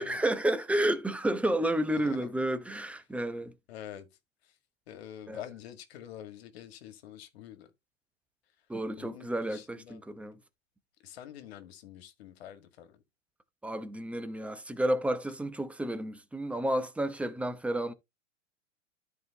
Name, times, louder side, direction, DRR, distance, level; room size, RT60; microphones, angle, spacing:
voice 1, 0.0-3.5 5.3-5.4 8.7-10.4 13.6-17.9, right 1 dB, 5° right, 0.8 m, -31 dB
voice 2, 2.0-2.4 3.7-4.1 4.4-4.6 4.9-7.7 9.0-10.0 11.0-13.0, left 10 dB, 55° left, 1.9 m, -46 dB
13.0 x 4.7 x 2.9 m
figure-of-eight pair, 100°, 38 cm